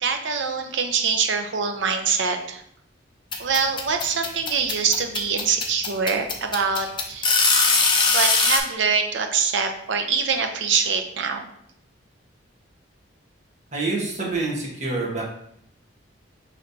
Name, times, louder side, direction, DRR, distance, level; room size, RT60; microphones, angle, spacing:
voice 1, 0.0-2.6 3.4-7.3 8.1-11.4, right 5 dB, 70° right, 5 dB, 0.5 m, -24 dB
sound 1, 3.3-8.6, left 4 dB, 25° left, 0.4 m, -20 dB
voice 2, 13.7-15.2, right 3 dB, 35° right, -5 dB, 1.2 m, -26 dB
5.1 x 3.2 x 2.7 m, 0.71 s
head